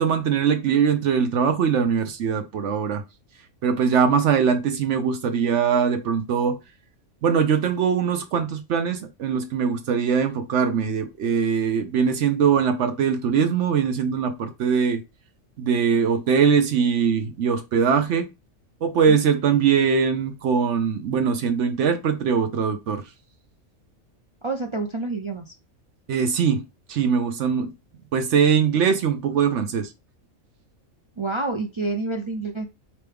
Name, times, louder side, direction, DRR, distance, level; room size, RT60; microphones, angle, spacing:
voice 1, 0.0-3.0 3.6-6.6 7.2-15.0 15.6-18.3 18.8-23.0 26.1-26.6 26.9-27.7 28.1-29.9, right 6 dB, 65° right, 0.9 m, -21 dB
voice 2, 24.4-25.5 31.2-32.7, right 3 dB, 45° right, 0.3 m, -28 dB
4.5 x 3.0 x 3.4 m
omnidirectional pair, 1.4 m